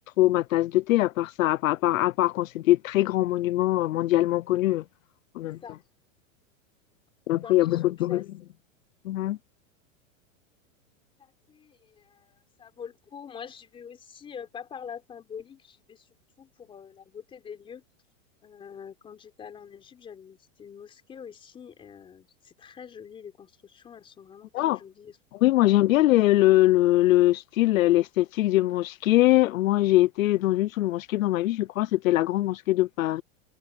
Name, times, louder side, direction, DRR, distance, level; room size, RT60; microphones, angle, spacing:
voice 1, 0.2-4.8 5.3-5.6 7.3-8.2 9.0-9.4 24.5-24.8 25.4-33.2, left 16 dB, 80° left, 0.7 m, -22 dB
voice 2, 5.4-5.8 7.4-8.2 11.2-16.1 16.4-17.8 18.4-25.2 25.6-25.9, left 7 dB, 15° left, 4.0 m, -45 dB
supercardioid pair, 175°, 40 cm